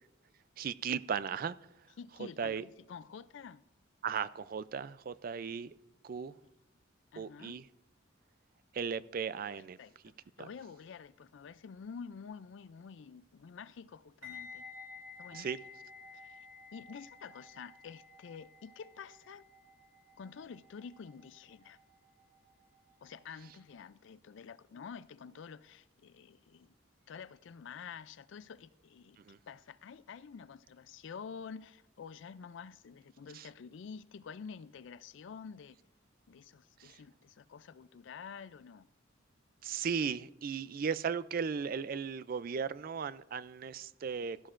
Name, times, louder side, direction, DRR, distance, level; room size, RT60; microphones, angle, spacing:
voice 1, 0.6-1.6 2.4-2.6 4.0-5.7 6.0-6.4 7.2-7.6 8.7-9.8 10.4-10.5 15.3-15.6 29.2-29.4 33.3-33.5 36.8-37.0 39.6-44.5, right 6 dB, 45° right, 0.3 m, -36 dB
voice 2, 2.0-3.6 7.1-7.6 9.6-14.6 15.2-15.5 16.1-16.4 16.7-19.4 20.2-21.8 23.0-26.7 27.1-29.2 29.5-35.8 36.3-38.9, left 6 dB, 60° left, 0.3 m, -49 dB
sound 1, 14.2-23.2 23.4-23.7, left 4 dB, 80° right, 2.9 m, -53 dB
15.5 x 12.5 x 2.5 m
head